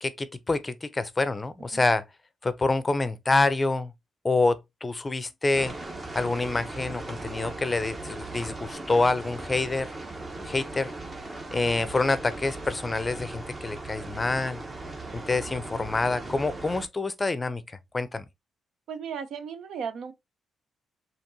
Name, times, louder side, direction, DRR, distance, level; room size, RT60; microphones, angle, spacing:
voice 1, 0.0-2.0 2.4-3.9 4.2-5.7 6.1-9.9 10.4-10.9 11.5-14.6 15.1-17.6 17.9-18.2, left 3 dB, 25° left, 0.5 m, -27 dB
sound 1, 5.5-16.9, right 2 dB, 30° right, 1.0 m, -38 dB
voice 2, 11.5-11.9 15.1-15.2 18.9-20.1, right 6 dB, 75° right, 0.7 m, -37 dB
4.4 x 2.8 x 2.7 m
cardioid pair, 75°, 0 cm